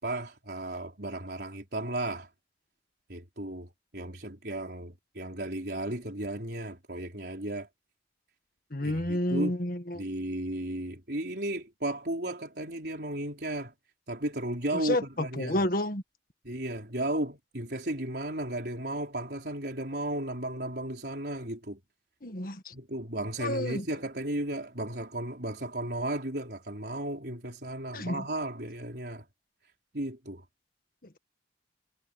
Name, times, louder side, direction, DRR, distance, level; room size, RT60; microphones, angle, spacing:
voice 1, 0.0-2.3 3.1-7.7 8.8-9.6 9.9-13.7 14.1-15.6 16.4-21.8 22.7-29.2 29.9-30.4, right 1 dB, 65° right, 4.7 m, -34 dB
voice 2, 8.7-10.0 14.7-16.0 22.2-22.7 23.4-23.8 27.9-28.2, left 1 dB, 55° left, 1.8 m, -30 dB
head